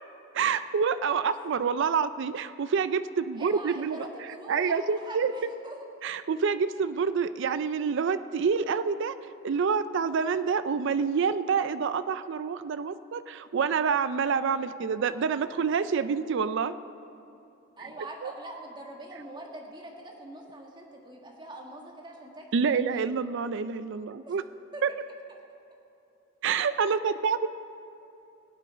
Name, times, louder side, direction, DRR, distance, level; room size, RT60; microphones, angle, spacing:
voice 1, 0.3-4.1 4.5-5.3 6.0-9.1 9.4-16.7 18.2-18.3 22.5-24.4 24.8-24.9 26.4-27.5, right 6 dB, 65° right, 12 dB, 0.4 m, -27 dB
voice 2, 3.3-5.9 17.8-23.1 24.2-24.4 24.7-24.8, right 1 dB, 25° right, 0 dB, 1.7 m, -43 dB
22.5 x 8.5 x 5.2 m, 2.8 s
head